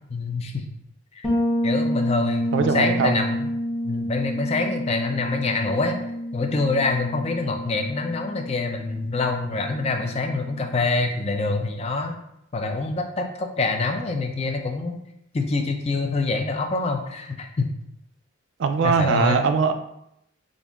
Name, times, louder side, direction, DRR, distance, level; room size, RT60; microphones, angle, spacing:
voice 1, 0.1-0.7 1.2-1.3 1.6-3.5 3.8-6.0 6.3-12.2 12.5-14.9 15.3-17.7 18.8-19.4, left 3 dB, 30° left, 4 dB, 0.3 m, -25 dB
Bass guitar, 1.2-10.9, equal, 5° left, 0.9 m, -29 dB
voice 2, 2.5-3.2 18.6-19.7, right 5 dB, 60° right, 8 dB, 0.3 m, -21 dB
5.2 x 2.5 x 2.4 m, 0.78 s
head